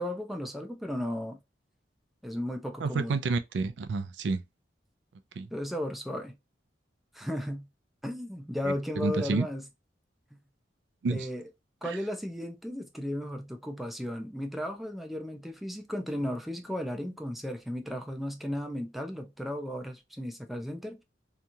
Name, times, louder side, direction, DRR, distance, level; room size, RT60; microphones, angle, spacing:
voice 1, 0.0-1.4 2.2-3.2 5.5-6.3 7.1-7.7 8.0-9.6 10.3-10.4 11.1-11.4 11.8-21.0, equal, ahead, 0.5 m, -35 dB
voice 2, 2.8-4.4 5.4-5.5 8.6-9.5 11.0-11.3 11.8-12.0, right 3 dB, 80° right, 0.4 m, -30 dB
2.9 x 2.3 x 2.6 m
head